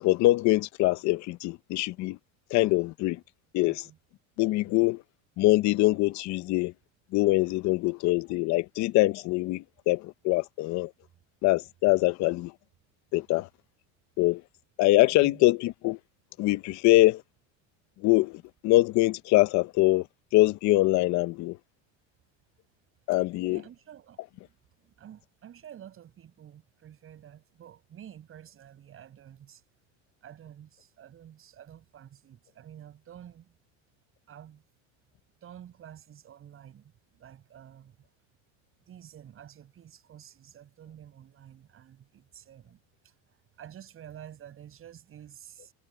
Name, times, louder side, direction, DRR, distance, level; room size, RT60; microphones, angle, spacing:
voice 1, 0.0-2.2 2.5-3.2 3.5-3.8 4.4-5.0 5.4-6.7 7.1-10.9 11.4-12.5 13.1-13.5 14.2-14.4 14.8-16.0 16.4-17.2 18.0-20.1 20.3-21.6 23.1-23.6, left 18 dB, 45° left, 0.9 m, -24 dB
voice 2, 3.6-4.0 4.6-4.9 15.0-15.4 23.5-24.2 24.4-24.5 24.8-29.6 30.2-33.5 34.3-34.6 35.4-38.0 38.9-43.1 43.6-45.7, right 10 dB, 30° right, 7.9 m, -50 dB
supercardioid pair, 130°, 40 cm